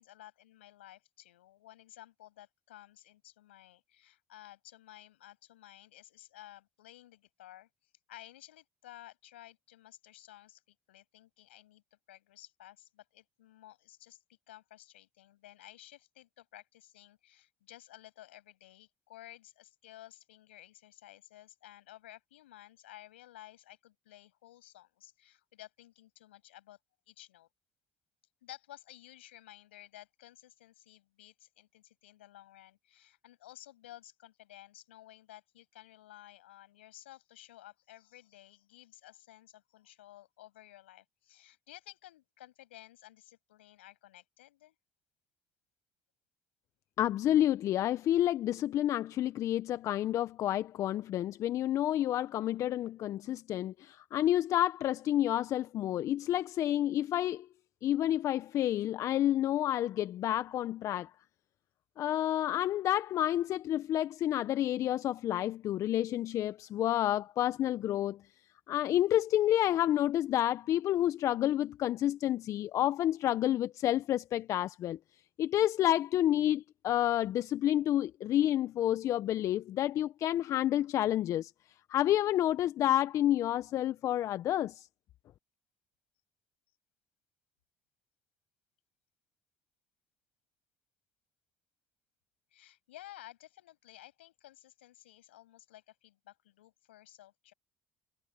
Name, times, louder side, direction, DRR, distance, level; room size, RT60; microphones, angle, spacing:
voice 1, 0.0-7.7 8.1-26.8 27.1-27.5 28.4-44.7 92.5-97.5, left 15 dB, 85° left, 8.0 m, -54 dB
voice 2, 47.0-57.5 57.8-61.1 62.0-68.2 68.7-75.0 75.4-81.5 81.9-84.9, left 12 dB, 60° left, 1.2 m, -29 dB
hypercardioid pair, 55°, 6 cm